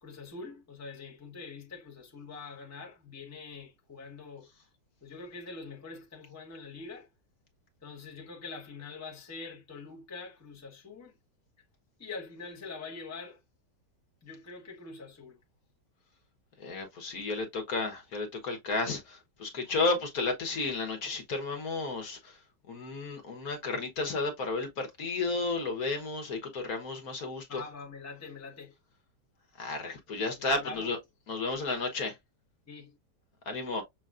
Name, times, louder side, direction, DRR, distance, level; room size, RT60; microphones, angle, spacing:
voice 1, 0.0-4.5 5.0-7.1 7.8-11.1 12.0-13.4 14.2-15.4 27.5-28.7 30.4-30.9 32.7-33.0, left 4 dB, 10° left, 1.0 m, -44 dB
voice 2, 16.6-22.4 22.7-27.6 29.6-31.0 31.3-32.2 33.5-33.8, left 3 dB, 60° left, 1.6 m, -32 dB
6.6 x 3.0 x 2.4 m
omnidirectional pair, 1.9 m